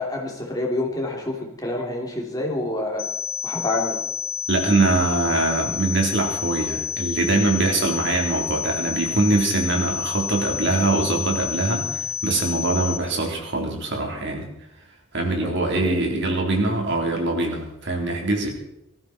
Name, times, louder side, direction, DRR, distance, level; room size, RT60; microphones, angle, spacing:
voice 1, 0.0-3.0 3.4-4.0 15.4-15.5 15.8-16.0, left 2 dB, 15° left, -1 dB, 3.4 m, -27 dB
sound 1, 3.0-13.0, left 13 dB, 60° left, 1.3 m, -29 dB
voice 2, 4.5-14.5 15.1-18.5, right 2 dB, 55° right, 1 dB, 3.8 m, -23 dB
19.0 x 14.5 x 4.5 m, 0.86 s
head